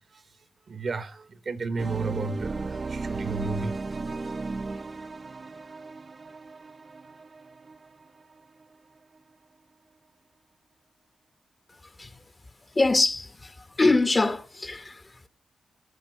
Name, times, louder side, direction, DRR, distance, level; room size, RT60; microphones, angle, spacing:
voice 1, 0.7-3.7 4.7-4.8, right 4 dB, 55° right, 1.1 m, -32 dB
sound 1, 1.8-8.6, right 3 dB, 40° right, 0.5 m, -35 dB
voice 2, 12.7-15.3, left 2 dB, 25° left, 0.9 m, -24 dB
14.5 x 5.3 x 6.2 m
cardioid pair, 95°, 0 cm